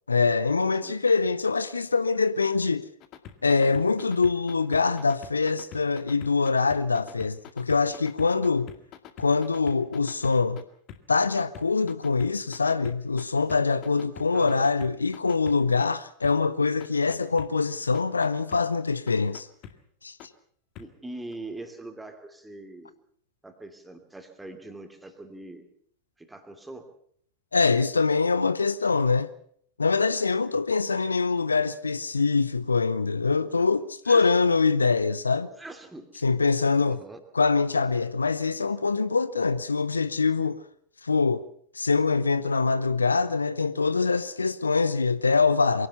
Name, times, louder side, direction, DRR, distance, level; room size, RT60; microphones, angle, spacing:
voice 1, 0.1-2.8 3.4-8.7 9.2-10.6 11.1-19.5 20.0-20.2 27.5-29.3 29.8-35.5 36.2-37.0 37.3-40.6 41.0-41.4 41.7-45.9, left 4 dB, 75° left, 0.8 m, -24 dB
sound 1, 3.0-10.6 10.9-13.2 13.5-15.9 16.2-16.3 16.8-17.5 17.9-18.6 19.1-19.7 20.2-20.3 20.8-20.9 21.3-21.4, left 9 dB, 40° left, 2.0 m, -44 dB
voice 2, 14.3-14.6 20.8-22.9 23.4-25.7 26.2-26.9 34.1-34.3 35.6-36.2 36.9-37.2, right 2 dB, 5° right, 2.8 m, -42 dB
23.0 x 17.0 x 6.9 m
figure-of-eight pair, 90°, 0 cm